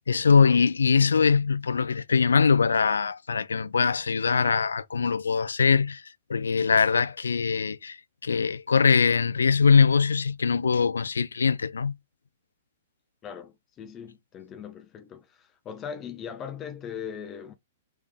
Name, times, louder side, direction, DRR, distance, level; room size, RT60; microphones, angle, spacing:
voice 1, 0.1-6.0 6.3-11.9, left 5 dB, 85° left, 0.4 m, -22 dB
voice 2, 13.2-17.5, left 7 dB, 30° left, 0.7 m, -39 dB
3.6 x 3.4 x 3.3 m
hypercardioid pair, 120°, 0 cm